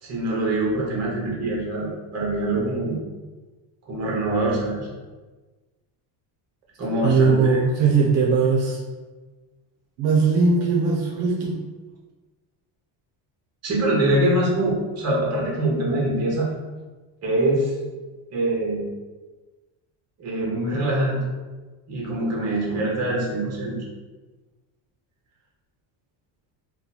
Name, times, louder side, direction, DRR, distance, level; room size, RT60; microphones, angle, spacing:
voice 1, 0.0-3.0 3.9-4.9 6.8-7.6 13.6-16.5 17.2-17.7 18.3-18.9 20.2-21.2 21.9-23.8, right 1 dB, 30° right, -4 dB, 1.0 m, -24 dB
voice 2, 7.0-8.8 10.0-11.6 14.4-14.5, right 4 dB, 65° right, -2 dB, 0.7 m, -19 dB
2.9 x 2.3 x 4.0 m, 1.3 s
cardioid pair, 175°, 49 cm